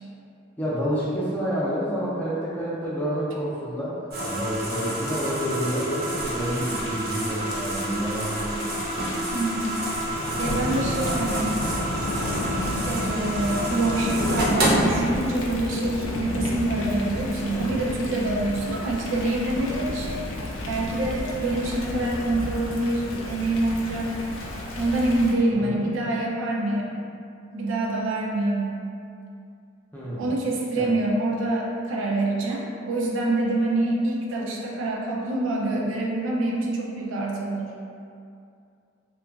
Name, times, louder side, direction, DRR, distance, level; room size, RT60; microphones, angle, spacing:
voice 1, 0.6-8.8 25.6-25.8 29.9-30.3 30.8-30.9, equal, 10° left, -9 dB, 0.5 m, -29 dB
sound 1, 4.1-14.7, right 1 dB, 55° right, 0.7 m, -29 dB
Thunder / Rain, 6.2-25.3, left 1 dB, 80° left, 0.4 m, -32 dB
voice 2, 9.3-9.8 10.4-11.6 12.8-20.2 20.7-24.2 24.7-27.0 27.5-28.8 30.2-37.7, right 2 dB, 85° right, -2 dB, 0.4 m, -26 dB
2.8 x 2.4 x 2.3 m, 2.5 s
head